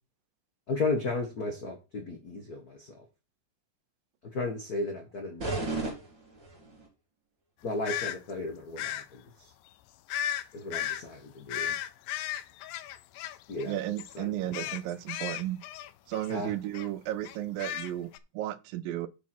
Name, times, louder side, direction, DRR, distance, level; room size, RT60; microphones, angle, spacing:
voice 1, 0.7-2.9 4.3-5.9 7.6-9.2 10.5-11.7 13.5-13.8 14.1-14.7 16.3-16.5, left 3 dB, 55° left, 1.0 m, -34 dB
sound 1, 5.4-6.9, right 3 dB, 30° right, 3.8 m, -34 dB
sound 2, 7.8-8.2 8.8-9.1 10.1-10.4 10.7-11.0 11.5-13.7 14.0-14.2 14.5-16.4 16.7-16.9 17.2-18.2, left 11 dB, 90° left, 2.4 m, -35 dB
voice 2, 13.7-15.6 16.1-19.1, right 13 dB, 85° right, 2.5 m, -34 dB
7.5 x 7.0 x 4.4 m
omnidirectional pair, 4.0 m